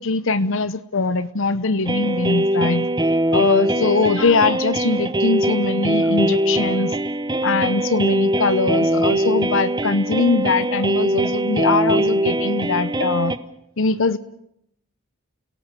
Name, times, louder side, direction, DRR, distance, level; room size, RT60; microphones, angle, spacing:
voice 1, 0.0-2.9 3.3-7.0 7.4-13.3 13.8-14.2, left 4 dB, 60° left, 15 dB, 0.9 m, -21 dB
sound 1, 1.9-13.4, right 1 dB, 20° right, 1.0 m, -21 dB
29.0 x 18.0 x 8.4 m, 0.76 s
head